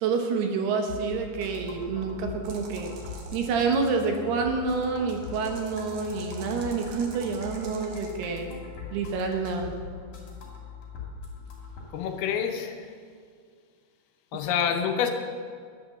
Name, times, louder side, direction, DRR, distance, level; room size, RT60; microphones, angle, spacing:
voice 1, 0.0-2.9 3.3-8.5 8.9-9.7, right 4 dB, 75° right, 4 dB, 3.2 m, -28 dB
sound 1, 0.9-11.8, left 4 dB, 45° left, 3.3 m, -41 dB
sound 2, 2.4-3.5 5.2-8.1, right 4 dB, 60° right, 2.3 m, -47 dB
voice 2, 11.9-12.8 14.3-15.1, left 8 dB, 75° left, 5 dB, 2.5 m, -27 dB
10.5 x 10.0 x 7.0 m, 2.1 s
omnidirectional pair, 4.9 m